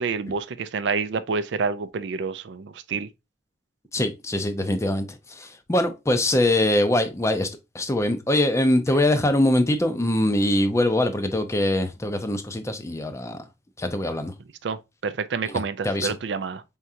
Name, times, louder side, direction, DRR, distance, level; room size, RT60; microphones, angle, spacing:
voice 1, 0.0-3.1 14.6-16.6, right 5 dB, 70° right, 0.4 m, -28 dB
voice 2, 3.9-13.4 13.8-14.3 15.4-16.1, left 1 dB, 15° left, 0.5 m, -23 dB
4.4 x 3.6 x 2.7 m
head